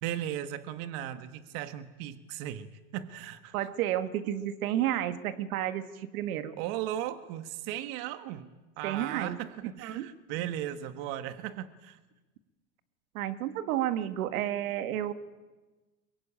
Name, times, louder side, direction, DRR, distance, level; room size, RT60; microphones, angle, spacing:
voice 1, 0.0-3.5 6.6-8.5 8.8-12.0, right 11 dB, 55° right, 11 dB, 1.5 m, -37 dB
voice 2, 3.5-6.6 8.8-9.4 9.8-10.1 13.1-15.1, right 12 dB, 85° right, 11 dB, 1.8 m, -31 dB
23.0 x 23.0 x 8.8 m, 1.2 s
supercardioid pair, 135°, 42 cm